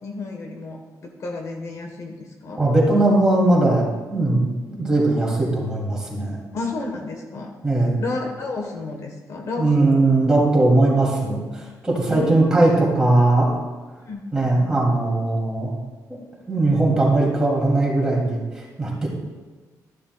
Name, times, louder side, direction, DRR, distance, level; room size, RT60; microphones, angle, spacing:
voice 1, 0.0-0.8 1.2-2.6 6.5-7.5 8.0-10.1 12.1-12.5 14.0-14.2, left 3 dB, 50° left, 2 dB, 1.1 m, -31 dB
voice 2, 2.5-3.8 4.1-6.4 7.6-8.0 9.6-13.5 14.3-15.7 16.1-16.2 16.5-19.1, right 2 dB, 10° right, -4 dB, 2.5 m, -19 dB
13.0 x 11.0 x 2.2 m, 1.3 s
wide cardioid pair, 165°, 7 cm